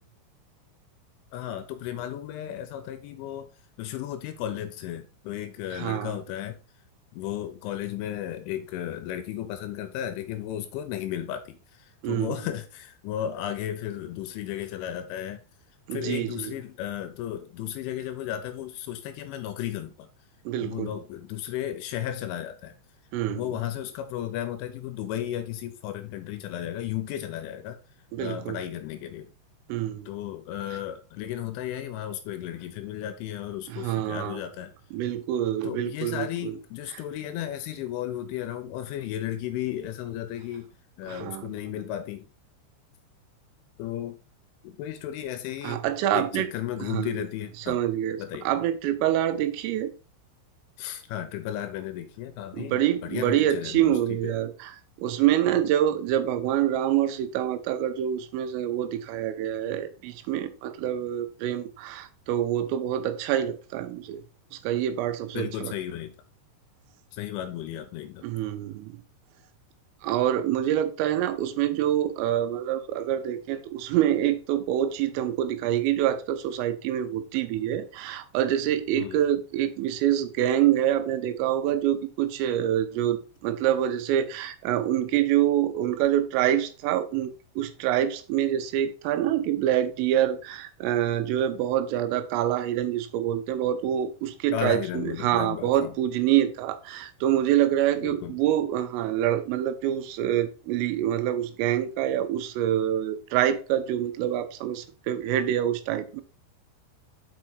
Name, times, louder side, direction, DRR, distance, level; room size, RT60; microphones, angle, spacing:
voice 1, 1.3-3.5 3.8-6.6 7.1-15.4 15.9-20.1 20.6-22.8 23.3-27.8 28.2-29.3 30.1-34.7 35.6-40.7 41.0-42.3 43.8-44.2 44.6-45.8 46.1-47.8 48.2-48.5 50.8-54.3 65.3-66.2 67.1-68.3 79.0-79.2 94.5-96.0 98.0-98.4, left 11 dB, 85° left, 2.9 m, -34 dB
voice 2, 5.7-6.1 12.0-12.3 15.9-16.5 20.5-21.0 23.1-23.4 28.1-28.6 29.7-30.1 33.7-34.4 34.9-36.6 41.1-41.5 45.6-46.5 46.8-47.2 47.7-49.9 52.5-54.7 55.0-64.2 64.5-65.7 68.2-68.9 70.0-87.3 87.6-106.2, right 11 dB, 85° right, 3.3 m, -26 dB
6.4 x 5.4 x 4.5 m
omnidirectional pair, 5.9 m